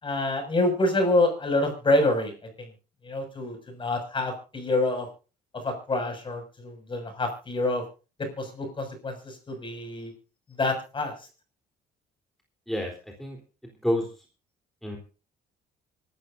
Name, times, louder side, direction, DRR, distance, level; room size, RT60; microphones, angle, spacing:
voice 1, 0.0-2.3 2.6-2.7 3.0-5.1 5.6-7.8 8.2-10.1 10.6-11.1, left 2 dB, 30° left, 5 dB, 6.6 m, -27 dB
voice 2, 13.6-14.1 14.8-15.0, equal, ahead, 1 dB, 3.8 m, -28 dB
25.5 x 13.0 x 2.7 m, 0.35 s
cardioid pair, 110°, 17 cm